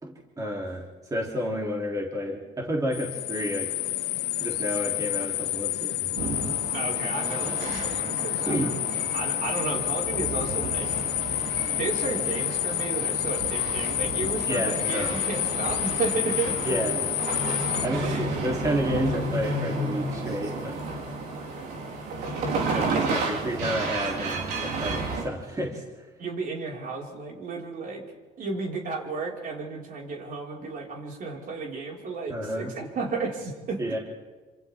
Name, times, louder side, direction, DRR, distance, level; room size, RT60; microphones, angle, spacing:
voice 1, 0.0-0.8 1.1-3.7 4.4-6.2 8.5-8.7 14.5-15.1 16.6-17.0 17.8-20.8 22.7-26.1 32.3-32.7 33.8-34.0, equal, 20° right, -2 dB, 3.2 m, -30 dB
sound 1, 2.9-17.9, left 16 dB, 85° left, 0.7 m, -29 dB
sound 2, 6.2-25.2, right 3 dB, 75° right, 4.2 m, -32 dB
voice 2, 6.7-8.8 9.1-10.9 11.4-16.6 18.0-18.3 22.9-23.4 26.2-28.1 28.4-33.8, right 3 dB, 55° right, -2 dB, 5.1 m, -33 dB
27.0 x 26.5 x 3.6 m, 1.3 s
cardioid pair, 110°, 17 cm